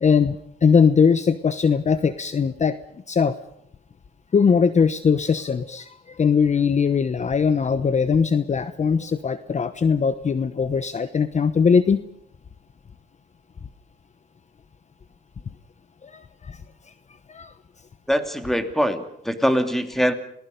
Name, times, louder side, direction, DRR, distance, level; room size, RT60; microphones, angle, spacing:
voice 1, 0.0-2.8 3.1-3.4 4.3-12.0 16.0-16.6 17.3-17.5, left 6 dB, 35° left, 12 dB, 1.0 m, -20 dB
voice 2, 18.1-20.1, equal, ahead, 7 dB, 2.8 m, -23 dB
29.0 x 19.5 x 5.3 m, 0.74 s
cardioid pair, 90°, 20 cm